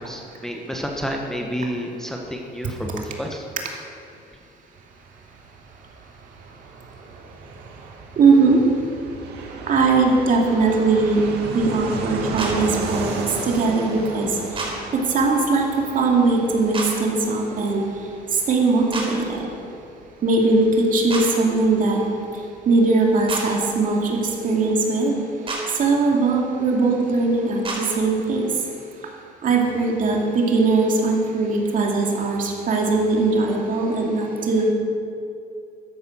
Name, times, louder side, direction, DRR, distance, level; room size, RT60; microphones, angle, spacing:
voice 1, 0.0-3.4, equal, 5° left, 1 dB, 1.3 m, -30 dB
Fixed-wing aircraft airplane, 4.7-23.1 23.4-23.5 23.7-24.4, right 4 dB, 75° right, 2.0 m, -35 dB
voice 2, 8.2-8.6 9.7-11.2 11.5-13.1 13.4-14.4 14.9-17.8 18.5-19.5 20.2-22.0 22.7-25.2 25.8-28.5 29.4-34.7, right 3 dB, 50° right, 0 dB, 2.5 m, -20 dB
sound 1, 12.4-12.5 14.5-14.7 16.7-16.9 18.9-19.1 21.1-21.2 23.3-23.4 25.5-25.6 27.6-27.8, right 3 dB, 30° right, 3.8 m, -28 dB
13.0 x 10.5 x 6.3 m, 2.6 s
cardioid pair, 110°, 17 cm